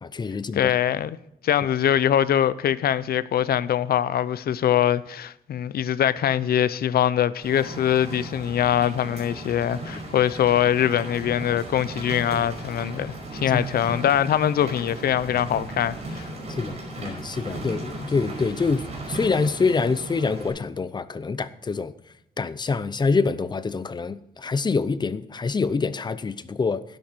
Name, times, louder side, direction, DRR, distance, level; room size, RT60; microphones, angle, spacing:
voice 1, 0.0-0.7 13.5-13.6 16.5-21.9 22.4-26.8, left 4 dB, 25° left, 0.6 m, -26 dB
voice 2, 0.5-1.2 1.4-16.2, left 10 dB, 70° left, 0.6 m, -23 dB
Rain, 7.4-20.5, right 2 dB, 45° right, 5.2 m, -36 dB
12.5 x 10.5 x 4.4 m
wide cardioid pair, 140°, 16 cm